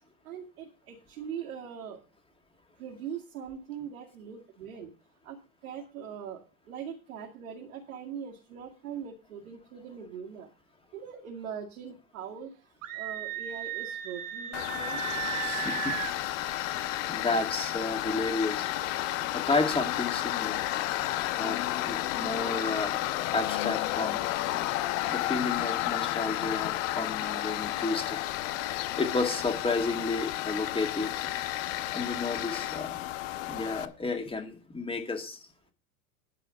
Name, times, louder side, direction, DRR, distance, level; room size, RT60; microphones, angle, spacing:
voice 1, 0.2-2.0 2.8-4.9 5.2-5.4 5.6-6.4 6.7-10.5 10.9-12.5 12.9-15.0 21.3-21.5, right 7 dB, 80° right, -2 dB, 2.4 m, -41 dB
Screaming, 12.8-16.2, right 11 dB, 50° right, 1.7 m, -35 dB
Tools, 14.5-33.8, left 15 dB, 65° left, 1.0 m, -32 dB
voice 2, 15.4-16.0 17.1-18.7 19.3-20.7 21.4-21.6 21.8-23.0 23.3-24.2 25.1-28.2 29.0-31.4 31.9-32.9 33.5-35.4, left 3 dB, 10° left, 5 dB, 2.1 m, -32 dB
11.0 x 5.0 x 7.6 m, 0.35 s
hypercardioid pair, 100°, 43 cm